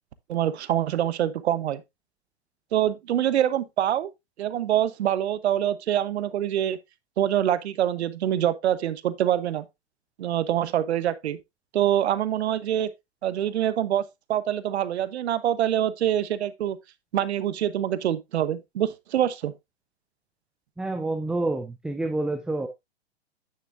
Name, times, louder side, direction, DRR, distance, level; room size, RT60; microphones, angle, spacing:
voice 1, 0.3-1.8 2.7-4.1 4.4-6.8 7.2-9.6 10.2-11.4 11.7-12.9 13.2-14.0 14.3-16.8 17.1-19.5, right 11 dB, 70° right, 1.0 m, -25 dB
voice 2, 20.8-22.7, right 2 dB, ahead, 0.4 m, -28 dB
9.3 x 6.7 x 2.5 m
hypercardioid pair, 120°, 34 cm